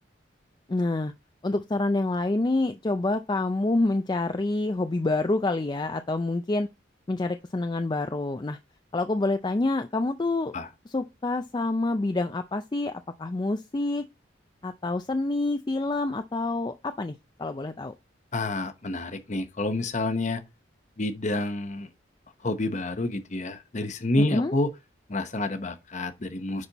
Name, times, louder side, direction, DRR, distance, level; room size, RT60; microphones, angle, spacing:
voice 1, 0.7-1.1 1.4-6.7 7.1-8.6 8.9-10.6 10.9-14.0 14.6-17.9 24.2-24.5, left 2 dB, 25° left, 0.4 m, -27 dB
voice 2, 18.3-20.4 21.0-21.9 22.4-24.7 25.1-26.7, left 2 dB, 40° left, 0.9 m, -28 dB
9.8 x 4.3 x 4.1 m
head